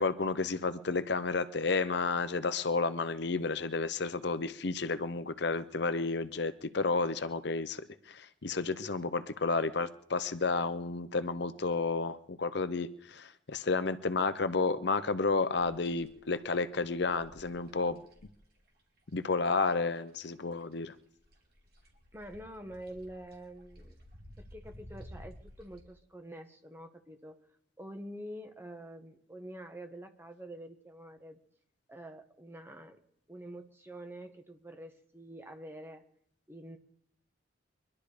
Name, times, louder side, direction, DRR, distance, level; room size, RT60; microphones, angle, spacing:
voice 1, 0.0-18.0 19.1-20.9, left 3 dB, 55° left, 12 dB, 0.7 m, -31 dB
sound 1, 15.5-20.4 20.6-25.8, equal, 50° right, 3.7 m, -54 dB
voice 2, 22.1-24.0 24.4-27.4 27.8-31.4 31.9-33.0 33.3-36.0 36.5-36.8, right 1 dB, 10° right, 6 dB, 1.3 m, -46 dB
23.5 x 12.0 x 5.0 m, 0.70 s
head